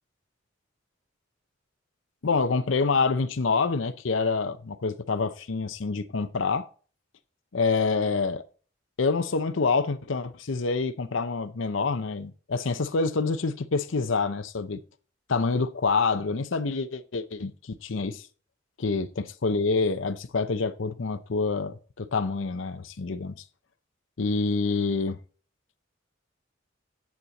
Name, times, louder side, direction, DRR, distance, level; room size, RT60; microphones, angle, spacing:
voice 1, 2.2-6.7 7.5-8.4 9.0-14.8 15.3-18.3 18.8-23.4 24.2-25.2, left 4 dB, 85° left, 0.7 m, -27 dB
9.6 x 7.3 x 4.1 m
head